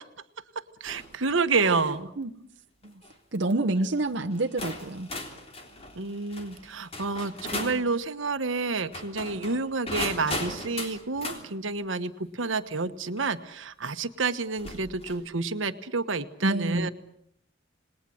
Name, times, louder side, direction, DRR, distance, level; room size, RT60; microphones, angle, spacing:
voice 1, 0.8-2.1 6.0-16.9, right 4 dB, 80° right, 10 dB, 1.3 m, -29 dB
sound 1, 0.9-1.2 1.7-2.0 2.8-3.1 4.0-4.1 4.6-7.8 8.8-11.4 13.2-13.3 14.6-15.3, left 2 dB, 30° left, 3.6 m, -37 dB
voice 2, 1.6-2.3 2.8-2.9 3.3-5.1 16.4-16.9, right 2 dB, 60° right, 3 dB, 1.0 m, -28 dB
27.5 x 20.5 x 7.8 m, 0.71 s
head